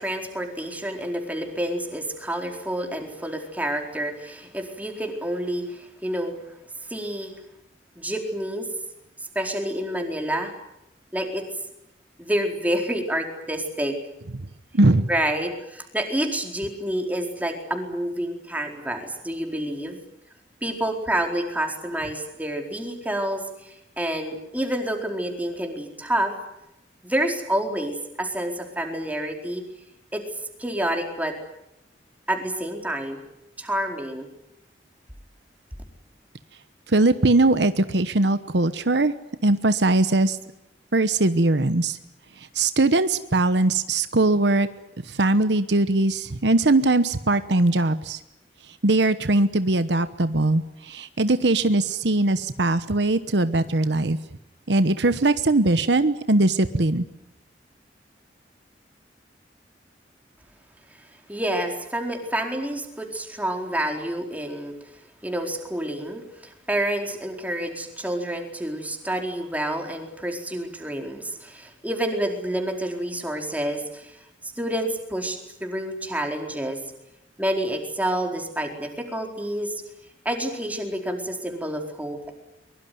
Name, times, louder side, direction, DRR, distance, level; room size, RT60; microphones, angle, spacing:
voice 1, 0.0-6.4 6.9-7.3 8.0-8.7 9.3-10.5 11.1-11.4 12.2-14.0 15.1-20.0 20.6-26.3 27.0-29.6 30.1-30.2 30.6-31.3 32.3-33.2 33.6-34.3 61.0-64.7 65.2-76.8 77.4-79.8 80.2-82.3, right 1 dB, 10° right, 3 dB, 4.4 m, -28 dB
voice 2, 14.7-15.1 36.9-39.1 39.4-40.4 40.9-42.0 42.5-44.7 45.1-48.2 48.8-54.2 54.7-57.0, right 2 dB, 70° right, 12 dB, 1.1 m, -20 dB
23.5 x 23.0 x 9.4 m, 0.86 s
head